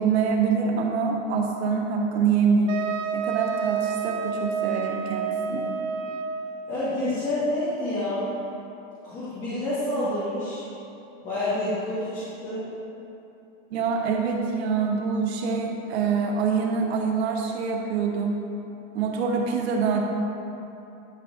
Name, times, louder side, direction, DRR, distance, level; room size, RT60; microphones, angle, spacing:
voice 1, 0.0-2.8 3.1-5.7 13.7-18.4 18.9-20.0, right 5 dB, 55° right, 1 dB, 1.2 m, -25 dB
Wind instrument woodwind instrument, 2.7-6.5, right 7 dB, 80° right, 0.7 m, -29 dB
voice 2, 6.7-8.3 9.0-10.6 11.2-12.7, left 1 dB, 20° left, -13 dB, 1.5 m, -28 dB
11.0 x 7.5 x 2.6 m, 2.9 s
supercardioid pair, 175°, 39 cm